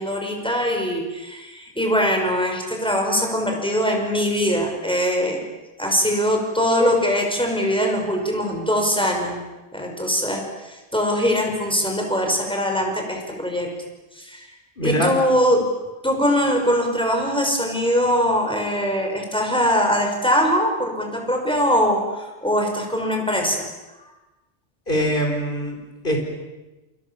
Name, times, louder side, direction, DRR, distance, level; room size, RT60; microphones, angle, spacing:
voice 1, 0.0-5.4 5.8-9.4 9.7-13.7 14.2-14.5 14.8-15.7 16.0-23.6, equal, 5° left, 2 dB, 5.9 m, -22 dB
voice 2, 14.8-15.1 24.9-25.8 26.0-26.2, equal, 45° left, 3 dB, 5.3 m, -22 dB
28.5 x 27.0 x 7.3 m, 1.1 s
omnidirectional pair, 1.2 m